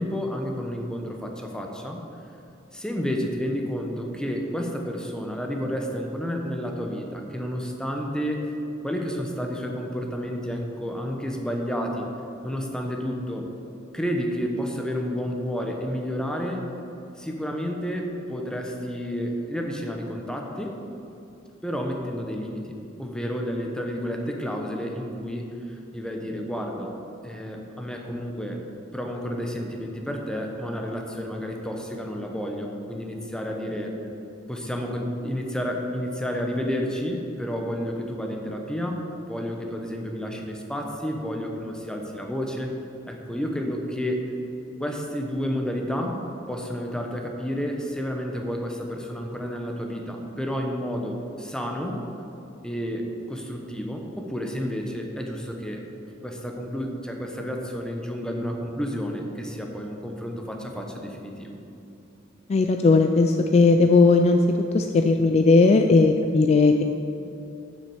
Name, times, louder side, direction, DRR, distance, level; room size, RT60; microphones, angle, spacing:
voice 1, 0.0-2.0 2.7-8.4 8.8-12.1 12.4-13.4 13.9-16.7 17.2-20.8 21.6-27.0 27.2-28.6 28.9-33.9 34.5-42.8 43.1-44.2 44.8-52.0 52.6-55.8 56.2-61.5, equal, 5° left, 1 dB, 0.8 m, -30 dB
voice 2, 62.5-64.4 64.7-66.8, left 3 dB, 30° left, 5 dB, 0.3 m, -17 dB
7.3 x 6.2 x 6.8 m, 2.9 s
head